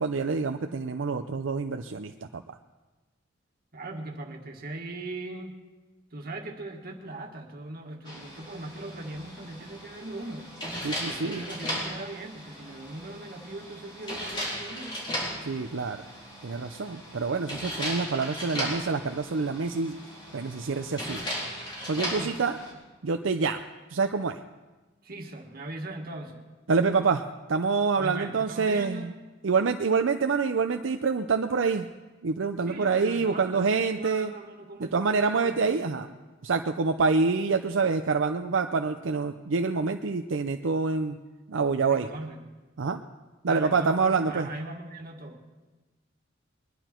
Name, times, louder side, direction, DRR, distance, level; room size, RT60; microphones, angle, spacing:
voice 1, 0.0-2.4 10.8-11.4 15.4-16.0 16.4-20.0 20.3-21.2 21.9-22.6 23.0-23.6 23.9-24.4 26.7-27.2 27.5-29.1 29.4-31.9 32.2-34.3 34.8-36.1 36.4-41.2 41.5-42.1 42.8-43.0 43.4-44.5, right 4 dB, 80° right, 6 dB, 0.6 m, -26 dB
voice 2, 3.7-5.6 6.1-10.5 11.0-15.0 22.2-22.5 25.0-26.5 28.0-29.1 32.7-36.2 41.9-42.5 43.4-45.4, right 2 dB, 50° right, 2 dB, 1.8 m, -40 dB
sound 1, 8.0-22.7, equal, 25° left, 4.2 m, -37 dB
22.0 x 11.0 x 4.4 m, 1.2 s
head